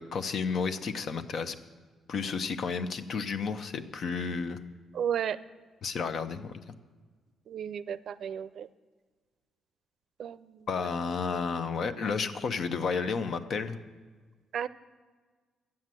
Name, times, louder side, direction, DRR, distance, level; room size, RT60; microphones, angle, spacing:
voice 1, 0.0-1.5 2.1-4.6 5.8-6.5 10.7-13.8, left 5 dB, 60° left, 9 dB, 0.9 m, -32 dB
voice 2, 4.9-5.4 7.5-8.7 10.2-10.9 14.5-14.7, right 9 dB, 65° right, 15 dB, 0.5 m, -33 dB
12.5 x 8.7 x 7.6 m, 1.4 s
cardioid pair, 90°, 0 cm